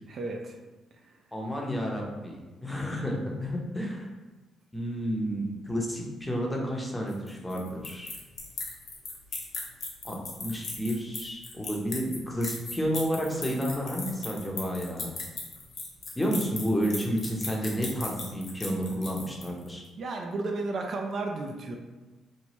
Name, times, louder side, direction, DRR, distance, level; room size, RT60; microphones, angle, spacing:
voice 1, 0.1-0.6 20.0-21.8, right 3 dB, 55° right, 2 dB, 0.3 m, -33 dB
voice 2, 1.3-4.1 4.7-8.2 10.0-10.2 10.4-15.1 16.1-19.8, equal, 10° left, -1 dB, 0.6 m, -31 dB
sound 1, 7.1-19.7, left 3 dB, 55° left, 0.7 m, -38 dB
3.0 x 2.1 x 2.9 m, 1.2 s
cardioid pair, 90°, 0 cm